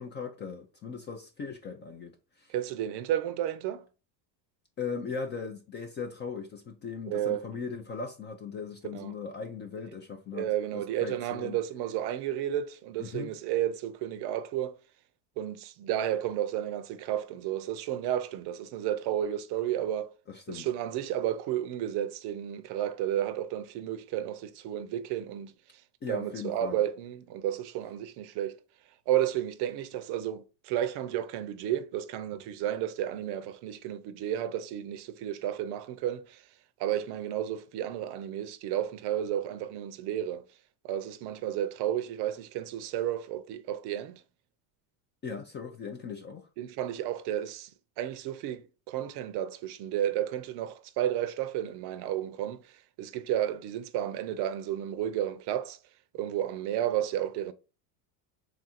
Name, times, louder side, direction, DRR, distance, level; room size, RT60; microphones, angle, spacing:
voice 1, 0.0-2.5 4.8-11.6 13.0-13.3 20.3-20.7 26.0-26.8 45.2-46.5, left 5 dB, 25° left, 0.3 m, -39 dB
voice 2, 2.5-3.8 7.1-7.5 8.9-9.1 10.3-14.8 15.4-20.1 20.5-25.5 26.1-28.6 29.1-36.4 36.8-40.4 40.8-44.2 46.6-47.7 48.0-55.8 56.1-57.5, right 11 dB, 55° right, 0.6 m, -32 dB
3.6 x 2.5 x 4.1 m
supercardioid pair, 115°, 50 cm